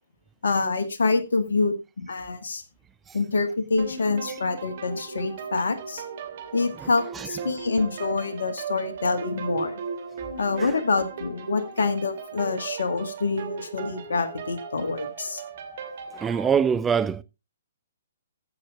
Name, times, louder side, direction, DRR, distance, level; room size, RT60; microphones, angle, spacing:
voice 1, 0.4-2.6 3.1-6.0 6.5-9.8 10.4-15.4, left 3 dB, 70° left, 1.9 m, -26 dB
sound 1, 3.8-16.6, right 5 dB, 55° right, 2.5 m, -37 dB
voice 2, 16.1-17.2, right 7 dB, 15° right, 0.6 m, -24 dB
14.5 x 6.5 x 3.6 m
figure-of-eight pair, 130°, 0 cm